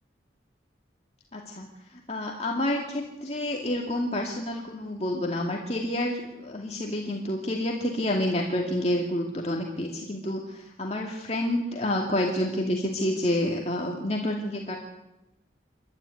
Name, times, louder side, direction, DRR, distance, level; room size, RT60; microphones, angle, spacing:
voice 1, 1.3-14.8, left 1 dB, 35° left, 0 dB, 2.4 m, -29 dB
28.5 x 13.0 x 9.7 m, 0.98 s
head